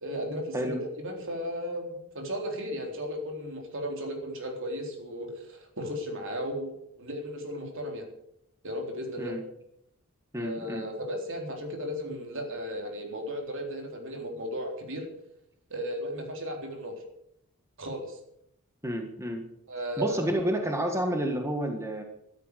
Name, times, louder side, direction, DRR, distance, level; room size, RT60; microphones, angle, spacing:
voice 1, 0.0-1.9 2.1-8.1 8.6-9.4 10.4-15.1 15.7-16.9 17.8-18.2 19.7-20.3, equal, 60° right, 2 dB, 3.9 m, -35 dB
voice 2, 10.3-10.9 18.8-19.5 20.0-22.0, equal, 15° right, 4 dB, 1.6 m, -30 dB
14.0 x 13.0 x 6.7 m, 0.76 s
head